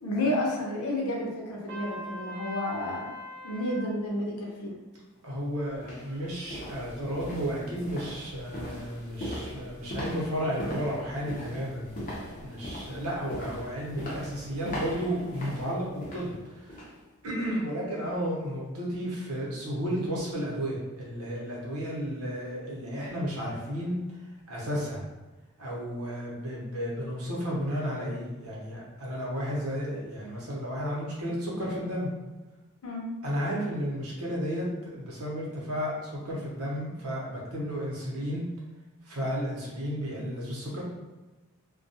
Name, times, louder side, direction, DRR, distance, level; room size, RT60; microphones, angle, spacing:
voice 1, 0.0-3.2 3.4-4.8 32.8-33.1, left 1 dB, 85° left, -2 dB, 0.7 m, -31 dB
Trumpet, 1.7-3.9, left 1 dB, 55° right, 0.3 m, -41 dB
sound 1, 5.0-5.2 5.7-17.0 17.4-17.6 18.0-18.1, equal, 35° left, 0.6 m, -40 dB
voice 2, 5.2-12.0 12.4-16.9 17.2-24.0 24.5-25.0 25.6-32.1 33.2-38.4 39.0-40.8, equal, 80° right, -4 dB, 0.8 m, -33 dB
2.3 x 2.2 x 2.7 m, 1.2 s
head